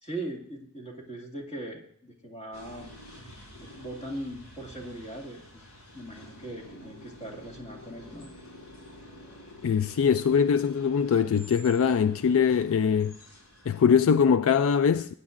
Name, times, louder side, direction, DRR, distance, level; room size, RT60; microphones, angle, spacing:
voice 1, 0.0-2.9 3.6-5.6 5.9-8.3, right 1 dB, 25° left, 2.1 m, -40 dB
sound 1, 2.5-13.9, left 1 dB, 85° left, 4.1 m, -48 dB
voice 2, 9.6-13.2 13.7-15.1, left 7 dB, 65° left, 0.3 m, -22 dB
19.0 x 9.6 x 2.5 m
head